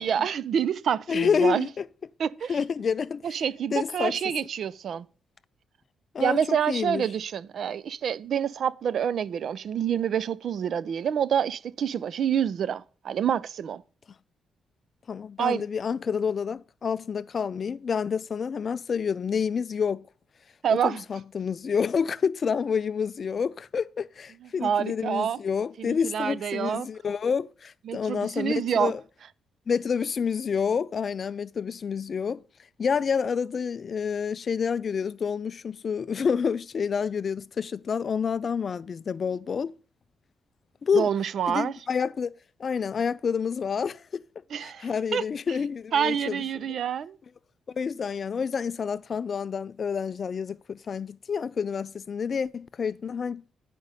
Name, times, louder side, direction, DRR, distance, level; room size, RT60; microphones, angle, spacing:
voice 1, 0.0-1.7 2.2-2.5 3.2-5.1 6.2-13.8 15.4-15.6 20.6-21.0 24.6-25.4 25.8-26.9 27.9-28.9 40.9-41.7 44.5-45.2 45.9-47.2, right 8 dB, 60° right, 0.4 m, -27 dB
voice 2, 1.1-1.8 2.5-3.4 3.7-4.2 6.1-7.1 15.1-20.1 20.8-29.0 29.7-32.4 32.8-39.8 40.8-41.1 41.5-42.3 42.6-44.2 44.6-46.4 47.7-53.4, left 6 dB, 40° left, 0.3 m, -28 dB
9.6 x 5.1 x 5.4 m
cardioid pair, 125°, 0 cm